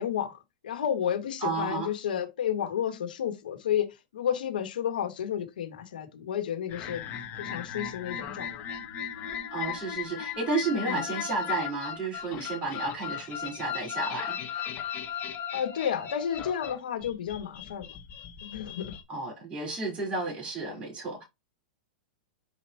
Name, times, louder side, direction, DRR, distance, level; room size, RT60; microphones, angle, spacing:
voice 1, 0.0-3.9 4.1-7.1 7.4-8.5 10.6-11.1 15.5-17.9 18.4-19.0 20.6-20.8, left 9 dB, 80° left, 2.1 m, -31 dB
voice 2, 1.4-1.9 9.5-14.4 19.1-21.2, right 3 dB, 25° right, 4.5 m, -32 dB
sound 1, 6.7-19.0, left 9 dB, 40° left, 1.9 m, -37 dB
6.8 x 5.3 x 3.0 m
hypercardioid pair, 120°, 5 cm